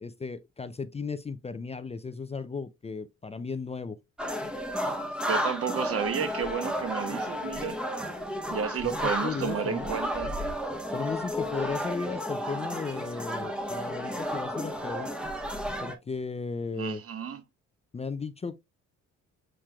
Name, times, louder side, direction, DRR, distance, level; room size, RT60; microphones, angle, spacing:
voice 1, 0.0-4.0 9.0-9.9 10.9-15.1 15.8-17.0 17.9-18.6, left 4 dB, 20° left, 0.5 m, -35 dB
sound 1, 4.2-15.9, equal, 5° right, 1.1 m, -32 dB
voice 2, 5.3-7.8 8.5-10.3 16.7-17.4, right 7 dB, 50° right, 0.9 m, -32 dB
7.4 x 3.2 x 2.3 m
cardioid pair, 90°, 30 cm